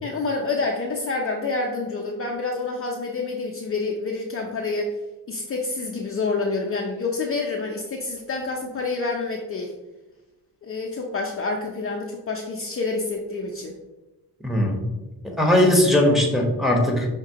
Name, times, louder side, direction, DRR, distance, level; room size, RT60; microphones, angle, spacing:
voice 1, 0.0-4.9 5.3-9.7 10.6-13.8, left 3 dB, 35° left, 0 dB, 0.5 m, -28 dB
voice 2, 14.4-14.8 15.4-17.1, left 1 dB, ahead, 0 dB, 1.0 m, -19 dB
5.8 x 2.9 x 2.8 m, 1.1 s
cardioid pair, 70°, 41 cm